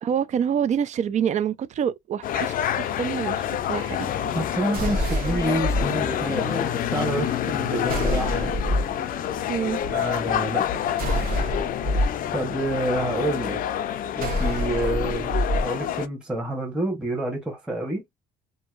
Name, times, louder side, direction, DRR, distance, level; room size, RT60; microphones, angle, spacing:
voice 1, 0.0-4.3 9.5-9.8, right 8 dB, 45° right, 0.4 m, -27 dB
sound 1, 2.2-16.1, left 10 dB, 55° left, 0.5 m, -28 dB
voice 2, 4.3-8.6 9.9-10.7 12.3-13.6 14.1-15.3 15.6-18.0, right 1 dB, 5° right, 1.1 m, -28 dB
sound 2, 4.7-5.8 7.9-8.9 11.0-12.1 14.2-15.6, equal, 60° right, 1.3 m, -26 dB
sound 3, 5.1-10.4, left 3 dB, 15° left, 0.7 m, -39 dB
2.7 x 2.6 x 2.4 m
cardioid pair, 110°, 17 cm